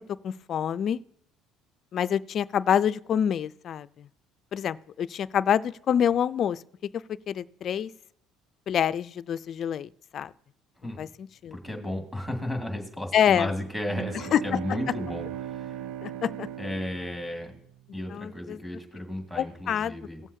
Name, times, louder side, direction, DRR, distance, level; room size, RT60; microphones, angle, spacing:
voice 1, 0.2-1.0 1.9-4.1 4.5-6.6 7.3-7.9 8.7-10.3 11.0-11.6 13.1-13.5 14.3-14.4 16.0-16.5 18.1-18.6 19.3-20.0, left 9 dB, 45° left, 16 dB, 0.3 m, -26 dB
voice 2, 11.5-15.9 16.6-17.5 17.9-20.2, left 1 dB, 5° right, 2 dB, 2.1 m, -34 dB
sound 1, 13.8-17.8, right 10 dB, 85° right, 0.4 m, -38 dB
18.0 x 7.3 x 2.7 m, 0.71 s
cardioid pair, 120°, 0 cm